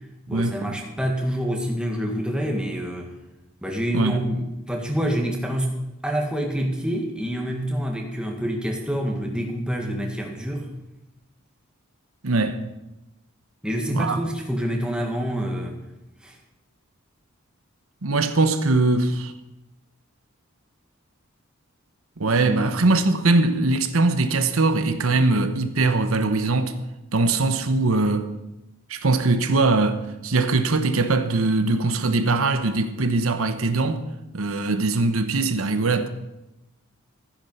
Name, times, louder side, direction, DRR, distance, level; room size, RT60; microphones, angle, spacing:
voice 1, 0.3-3.1 3.6-5.8 6.0-10.7 13.6-15.8 16.2-16.4 22.3-22.8, equal, 5° right, 1.8 m, -27 dB
voice 2, 12.2-12.6 13.9-14.2 18.0-19.3 22.2-26.8 27.1-28.3 28.9-34.0 34.3-36.1, right 3 dB, 80° right, 1.0 m, -21 dB
14.0 x 10.0 x 5.5 m
head